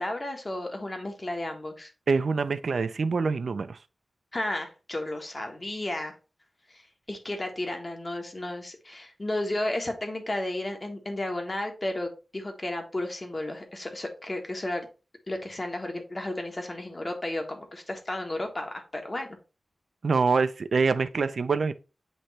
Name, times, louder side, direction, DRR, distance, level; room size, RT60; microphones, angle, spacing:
voice 1, 0.0-1.9 4.3-6.1 6.7-6.8 7.1-14.9 15.3-19.3, left 1 dB, 30° left, 1.5 m, -33 dB
voice 2, 2.1-3.8 20.0-21.7, right 4 dB, 75° right, 0.5 m, -25 dB
8.0 x 3.1 x 4.2 m
wide cardioid pair, 105°, 0 cm